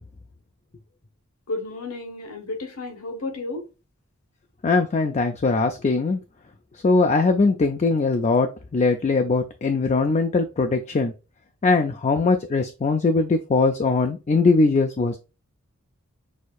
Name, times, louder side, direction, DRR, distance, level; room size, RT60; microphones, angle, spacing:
voice 1, 1.5-3.7, left 2 dB, 85° left, 1.4 m, -32 dB
voice 2, 4.6-6.2 6.8-11.1 11.6-15.2, left 3 dB, 30° left, 0.3 m, -21 dB
6.3 x 2.7 x 2.3 m
head